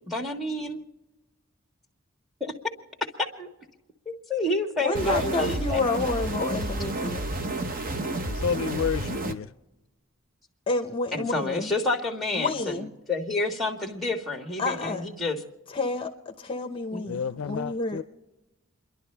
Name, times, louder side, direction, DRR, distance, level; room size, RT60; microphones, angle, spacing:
voice 1, 0.1-0.8 2.4-2.5 3.2-3.5 4.1-5.8 11.1-15.4 16.9-17.4, left 2 dB, ahead, 1.6 m, -29 dB
voice 2, 4.8-7.2 10.7-11.7 12.3-12.9 14.6-15.0 15.7-18.0, left 2 dB, 25° left, 0.8 m, -29 dB
sound 1, 4.9-9.3, right 1 dB, 40° right, 0.9 m, -30 dB
voice 3, 8.3-9.5 17.1-18.0, left 6 dB, 70° left, 0.4 m, -30 dB
29.5 x 11.5 x 3.3 m
head